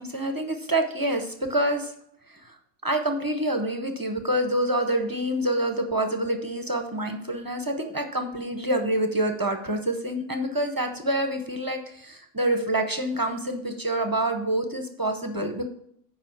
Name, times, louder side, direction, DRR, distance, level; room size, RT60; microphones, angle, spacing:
voice 1, 0.0-1.9 2.3-2.5 2.8-15.7, right 1 dB, 20° right, 5 dB, 0.5 m, -27 dB
7.4 x 5.1 x 7.1 m, 0.69 s
omnidirectional pair, 1.5 m